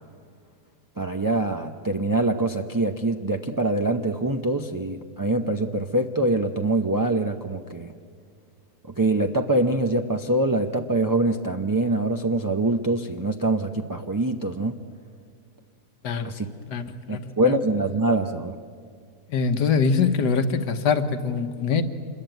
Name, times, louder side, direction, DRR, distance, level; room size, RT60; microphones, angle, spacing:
voice 1, 1.0-7.9 9.0-14.8 16.2-16.5 17.1-18.6, right 2 dB, 25° right, 3 dB, 0.4 m, -24 dB
voice 2, 16.7-17.6 19.3-21.8, left 5 dB, 85° left, 9 dB, 1.8 m, -23 dB
26.5 x 21.5 x 9.2 m, 2.2 s
omnidirectional pair, 1.7 m